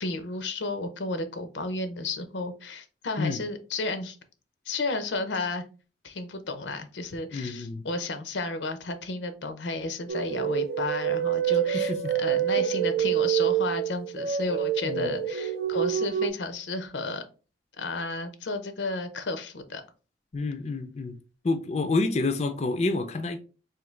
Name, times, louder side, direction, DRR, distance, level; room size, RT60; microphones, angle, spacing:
voice 1, 0.0-4.2 4.7-5.7 6.0-11.9 12.2-17.2 17.8-19.8, left 2 dB, 90° left, 0.6 m, -32 dB
voice 2, 7.3-7.8 11.7-12.1 14.8-15.1 20.3-21.2 21.4-23.4, left 3 dB, 35° left, 0.4 m, -28 dB
sound 1, 10.1-16.3, right 10 dB, 65° right, 0.4 m, -27 dB
3.7 x 2.8 x 3.1 m
head